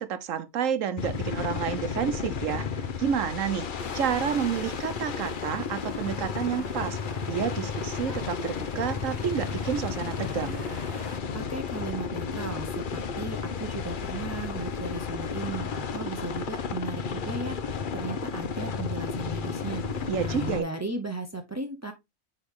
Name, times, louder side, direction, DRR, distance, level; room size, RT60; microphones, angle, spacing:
voice 1, 0.0-3.7 3.9-7.0 7.3-10.6 20.1-20.6, right 8 dB, 65° right, 1.1 m, -30 dB
sound 1, 1.0-20.6, left 5 dB, 50° left, 0.6 m, -33 dB
sound 2, 3.8-11.2, left 2 dB, 30° left, 2.0 m, -43 dB
voice 2, 11.3-21.9, right 2 dB, 25° right, 0.4 m, -36 dB
9.1 x 3.5 x 3.6 m
omnidirectional pair, 1.5 m